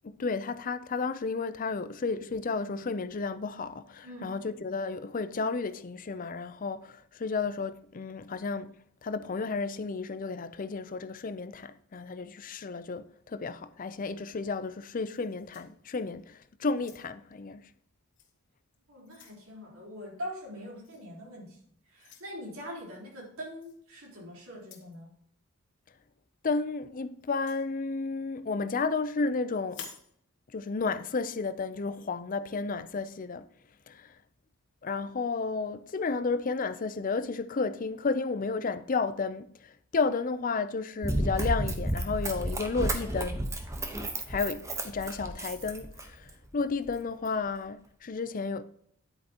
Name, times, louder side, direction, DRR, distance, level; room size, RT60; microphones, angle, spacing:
voice 1, 0.0-8.7 9.0-17.6 26.4-29.9 30.5-33.5 33.9-34.1 34.8-43.4 44.3-48.6, left 4 dB, 40° left, 0.5 m, -32 dB
voice 2, 4.0-4.4 18.9-25.1, equal, 75° right, 3.9 m, -43 dB
sound 1, 15.1-16.2 16.7-17.3 18.1-18.3 18.7-19.4 20.8-21.1 22.0-22.3 23.6-23.8 24.6-25.0 27.2-27.6 29.6-30.1, left 6 dB, 55° left, 1.7 m, -50 dB
Run, 41.0-46.3 46.9-47.0, right 1 dB, 15° right, 1.0 m, -32 dB
10.0 x 8.9 x 2.9 m
head